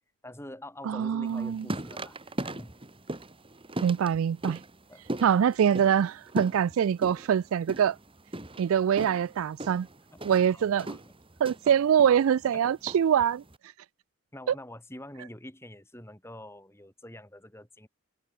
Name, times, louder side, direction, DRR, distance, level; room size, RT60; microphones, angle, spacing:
voice 1, 0.2-2.8 4.9-5.0 10.5-11.0 12.5-12.6 14.3-17.9, left 1 dB, 10° left, 4.7 m, -45 dB
voice 2, 0.8-1.7 3.8-4.6 5.2-8.0 8.6-9.9 10.2-11.0 11.4-13.4 14.5-14.6, right 8 dB, 70° right, 0.3 m, -24 dB
sound 1, 1.3-13.6, right 1 dB, 25° right, 2.3 m, -39 dB
head